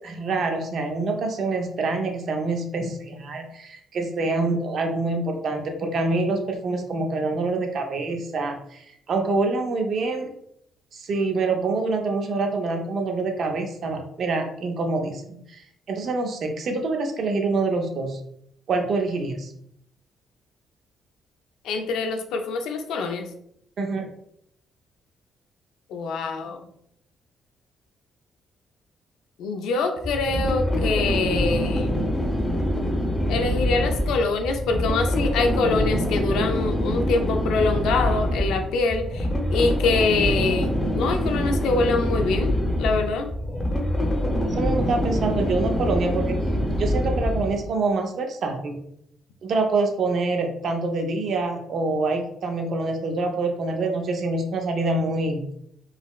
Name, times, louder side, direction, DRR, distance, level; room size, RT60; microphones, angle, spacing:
voice 1, 0.0-10.3 10.9-18.2 18.7-19.5 23.8-24.1 44.4-46.3 46.8-48.8 49.4-55.4, right 3 dB, 60° right, 4 dB, 0.6 m, -26 dB
voice 2, 21.6-23.3 25.9-26.7 29.4-32.0 33.3-43.3, left 3 dB, 85° left, 5 dB, 0.4 m, -25 dB
sound 1, 30.0-47.7, equal, 20° left, 0.7 m, -25 dB
4.0 x 2.0 x 2.3 m, 0.72 s
cardioid pair, 90°, 0 cm